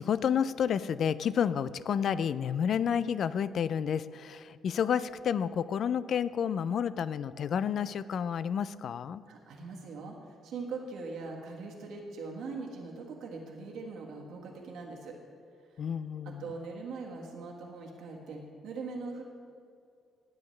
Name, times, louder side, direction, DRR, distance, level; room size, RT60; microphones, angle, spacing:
voice 1, 0.0-9.2 15.8-16.4, left 8 dB, 60° left, 16 dB, 0.3 m, -30 dB
voice 2, 9.3-15.2 16.2-19.2, right 4 dB, 80° right, 0 dB, 1.5 m, -41 dB
18.5 x 7.1 x 3.2 m, 2.3 s
cardioid pair, 90°, 0 cm